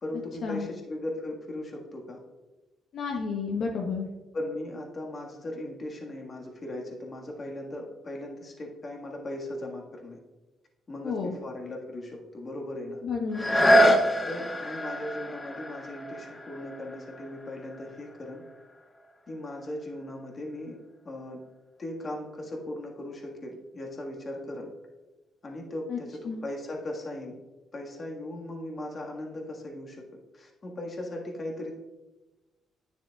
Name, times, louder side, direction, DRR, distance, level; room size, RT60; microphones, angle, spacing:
voice 1, 0.0-2.2 4.3-10.2 10.9-13.0 14.3-18.4 19.3-20.8 21.0-21.4 21.8-24.7 25.4-27.4 27.7-30.0 30.3-31.8, left 1 dB, 40° left, 0 dB, 1.6 m, -38 dB
voice 2, 2.9-4.1 11.0-11.3 13.0-13.4 13.7-14.0 25.9-26.0 26.2-26.4, left 5 dB, 65° left, 0 dB, 0.9 m, -31 dB
sound 1, 13.3-19.0 19.5-19.6, equal, 20° left, 0.7 m, -26 dB
9.9 x 6.7 x 2.4 m, 1.1 s
cardioid pair, 90°, 0 cm